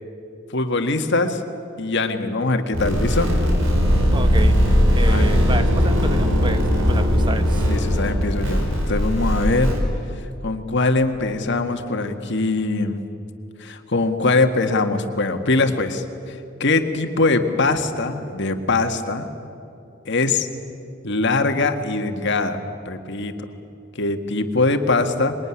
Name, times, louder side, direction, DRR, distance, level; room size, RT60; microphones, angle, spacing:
voice 1, 0.5-1.4 1.8-3.3 5.1-5.3 7.7-9.7 10.4-13.0 13.6-19.3 20.1-20.5 21.0-22.6 22.9-23.3 24.0-25.4, left 3 dB, 60° left, 6 dB, 1.8 m, -22 dB
sound 1, 2.7-9.8, equal, 70° right, 5.1 m, -19 dB
voice 2, 4.1-4.6 4.9-7.6, right 2 dB, 25° right, 9 dB, 1.1 m, -30 dB
26.0 x 21.5 x 9.9 m, 2.7 s
head